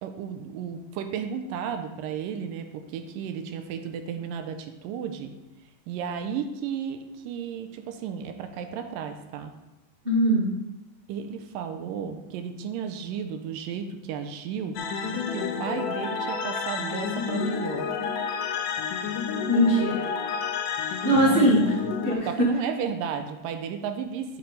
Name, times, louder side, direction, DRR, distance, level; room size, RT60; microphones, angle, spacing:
voice 1, 0.0-5.3 5.9-9.5 11.1-14.8 15.1-17.9 21.1-21.4 22.3-24.4, right 7 dB, 90° right, 7 dB, 2.3 m, -33 dB
voice 2, 10.0-10.5 19.5-20.1 21.0-21.7 22.0-22.5, right 1 dB, 25° right, -7 dB, 1.3 m, -21 dB
sound 1, 14.8-22.2, left 6 dB, 75° left, 2.1 m, -30 dB
9.1 x 7.0 x 3.4 m, 1.0 s
omnidirectional pair, 3.9 m